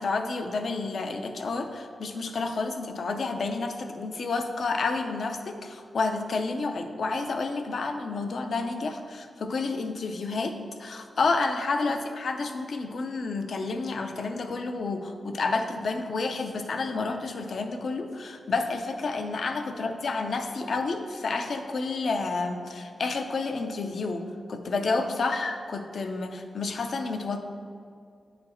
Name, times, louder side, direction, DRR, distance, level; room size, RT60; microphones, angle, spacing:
voice 1, 0.0-24.2 24.5-27.4, left 3 dB, 60° left, 5 dB, 0.6 m, -30 dB
8.7 x 4.1 x 4.3 m, 2.3 s
wide cardioid pair, 150°, 0 cm